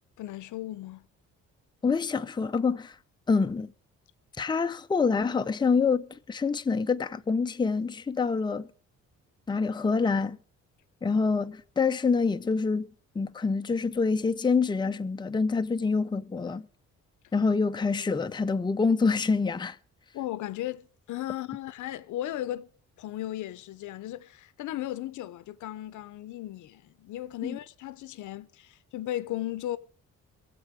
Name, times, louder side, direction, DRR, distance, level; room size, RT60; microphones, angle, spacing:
voice 1, 0.2-1.0 20.1-22.7 23.0-29.8, left 14 dB, 80° left, 0.8 m, -36 dB
voice 2, 1.8-3.0 3.3-3.7 4.4-8.7 9.5-10.4 11.0-12.9 13.1-16.7 17.3-19.8 27.4-27.6, left 4 dB, 15° left, 0.6 m, -26 dB
23.0 x 7.7 x 4.7 m
cardioid pair, 90°, 30 cm